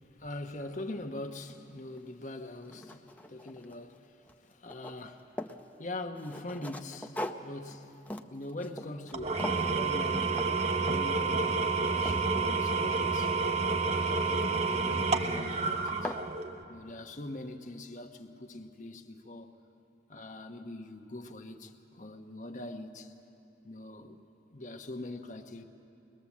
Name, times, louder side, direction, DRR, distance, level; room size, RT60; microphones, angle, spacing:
voice 1, 0.2-5.5 5.8-7.9 8.3-10.3 10.9-13.3 13.9-16.2 16.7-19.5 20.1-23.1 23.6-25.6, left 1 dB, 45° left, 1.1 m, -43 dB
sound 1, 2.0-2.1 2.5-4.0 4.3-5.6 6.1-9.1 9.4-9.7 10.3-10.5 10.8-11.2 11.6-13.2 14.7-15.1 15.5-15.6 15.9-16.3, left 1 dB, 10° left, 0.6 m, -41 dB
Engine / Tools, 9.1-16.6, right 4 dB, 35° right, 0.7 m, -29 dB
23.0 x 20.5 x 7.3 m
head